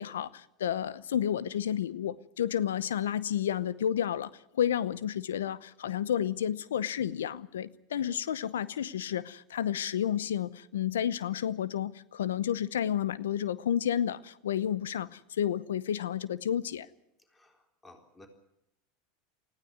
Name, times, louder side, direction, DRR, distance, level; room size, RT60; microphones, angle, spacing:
voice 1, 0.0-16.9, left 10 dB, 85° left, 19 dB, 0.8 m, -31 dB
voice 2, 17.8-18.3, left 2 dB, 15° left, 4 dB, 3.9 m, -54 dB
19.5 x 15.5 x 9.5 m, 0.84 s
hypercardioid pair, 100°, 0 cm